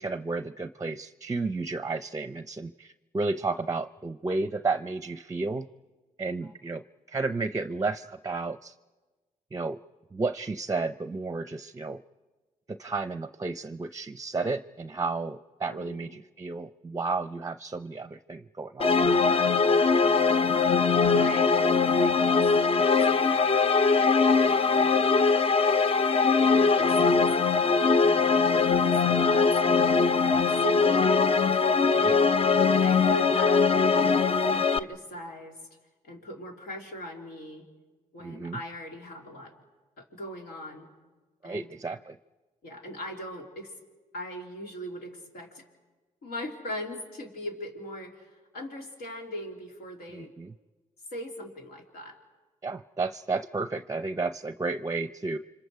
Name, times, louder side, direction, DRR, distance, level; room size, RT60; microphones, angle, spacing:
voice 1, 0.0-5.7 6.2-8.8 9.5-9.8 10.1-12.0 12.7-18.9 30.0-30.4 32.0-32.2 38.2-38.6 41.4-42.2 50.1-50.5 52.6-55.4, right 3 dB, 20° right, 12 dB, 0.6 m, -32 dB
voice 2, 15.7-16.2 21.1-22.5 22.8-23.5 24.4-25.1 26.4-31.6 32.6-35.6 36.0-37.7 38.1-39.5 40.0-40.9 41.4-41.7 42.6-43.7 44.1-45.6 46.2-50.3 51.1-52.2, left 1 dB, 85° left, 1 dB, 3.4 m, -40 dB
sound 1, 18.8-34.8, left 4 dB, 40° left, 0.7 m, -22 dB
29.5 x 25.5 x 4.8 m, 1.3 s
supercardioid pair, 55°, 15 cm